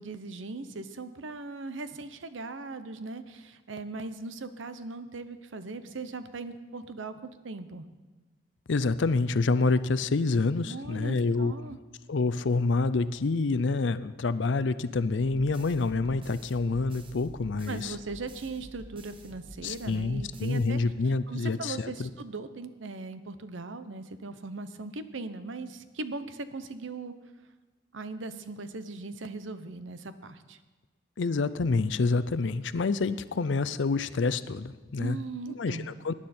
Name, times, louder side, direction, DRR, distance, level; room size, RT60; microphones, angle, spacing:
voice 1, 0.0-7.9 10.7-11.8 17.7-20.8 21.3-27.2 27.9-30.6 35.0-35.9, right 3 dB, 85° right, 11 dB, 0.8 m, -39 dB
voice 2, 8.7-11.5 12.1-18.0 19.6-22.1 31.2-35.2 35.5-36.1, left 3 dB, 75° left, 14 dB, 0.5 m, -27 dB
sound 1, 15.2-21.3, right 2 dB, 25° right, 1.0 m, -49 dB
18.5 x 9.9 x 4.3 m, 1.2 s
head